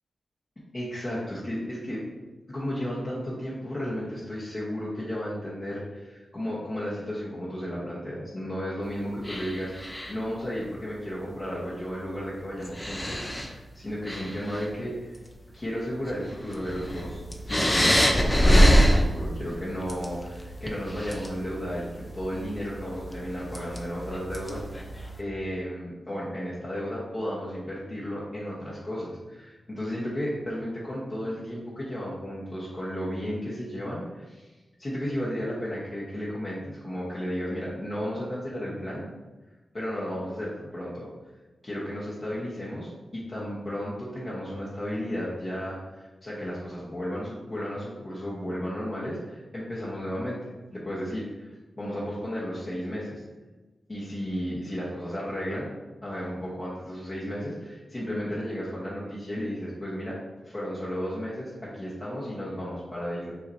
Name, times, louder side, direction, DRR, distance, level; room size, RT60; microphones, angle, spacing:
voice 1, 0.7-2.0 2.5-15.1 15.5-24.6 25.2-34.5 34.8-39.1 39.7-41.1 41.6-53.2 53.9-55.7 56.0-60.2 60.4-63.4, equal, 35° left, -8 dB, 1.1 m, -33 dB
sound 1, 9.2-10.3 11.8-11.9 12.6-13.5 13.9-14.8 15.3-15.4 16.1-25.2, equal, 15° left, 0.5 m, -26 dB
5.6 x 2.9 x 2.7 m, 1.2 s
wide cardioid pair, 85°, 0 cm